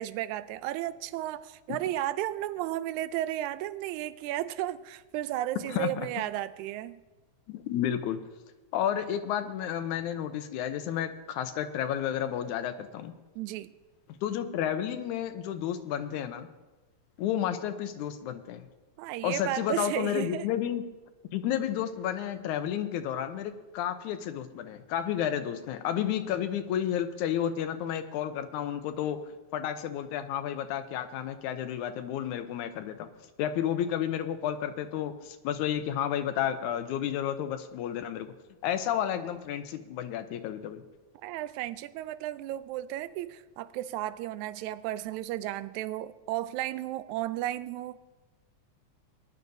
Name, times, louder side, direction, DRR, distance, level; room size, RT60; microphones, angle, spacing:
voice 1, 0.0-7.0 13.4-13.7 19.0-20.5 41.2-48.0, right 14 dB, 85° right, 15 dB, 1.9 m, -34 dB
voice 2, 5.7-6.1 7.5-8.2 8.7-13.1 14.2-16.5 17.2-18.7 19.2-20.8 21.3-29.2 29.5-33.1 33.4-38.3 38.6-40.8, left 10 dB, 85° left, 9 dB, 2.2 m, -31 dB
20.5 x 11.0 x 2.7 m, 1.2 s
omnidirectional pair, 3.3 m